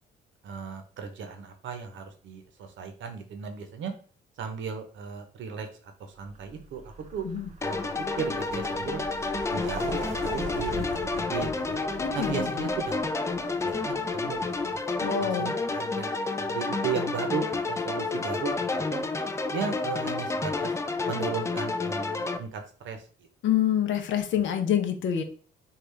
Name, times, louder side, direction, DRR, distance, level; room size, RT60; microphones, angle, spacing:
voice 1, 0.4-3.9 4.4-5.7 6.0-6.8 7.1-7.3 7.6-9.0 9.5-11.8 12.1-13.0 13.6-14.8 15.2-19.0 19.5-20.7 21.1-23.0, right 6 dB, 70° right, 6 dB, 0.8 m, -36 dB
Vehicle, 6.2-15.0, right 2 dB, 35° right, 0.7 m, -42 dB
sound 1, 7.6-22.4, left 3 dB, 15° left, 0.3 m, -30 dB
voice 2, 12.0-12.5 15.0-15.5 23.4-25.2, left 9 dB, 70° left, 5 dB, 0.7 m, -26 dB
3.8 x 2.4 x 3.3 m, 0.41 s
cardioid pair, 90°, 20 cm